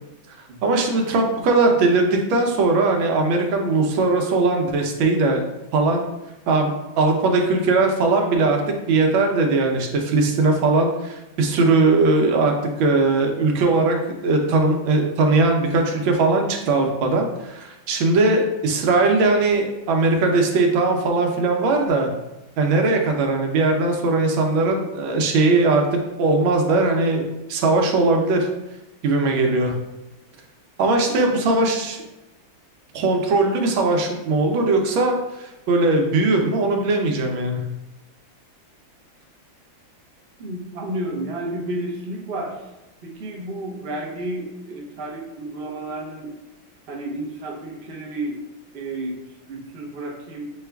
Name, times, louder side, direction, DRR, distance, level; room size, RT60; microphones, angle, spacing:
voice 1, 0.6-5.4 5.7-6.0 6.5-8.6 8.9-14.0 14.2-22.1 22.6-28.5 29.0-29.7 30.8-32.0 32.9-37.6, right 3 dB, 85° right, 2 dB, 1.5 m, -19 dB
voice 2, 31.1-31.4 40.4-42.6 43.0-46.4 46.9-48.4 48.7-49.2 49.5-50.5, right 1 dB, 55° right, -1 dB, 0.6 m, -31 dB
6.3 x 2.3 x 3.3 m, 0.98 s
omnidirectional pair, 2.1 m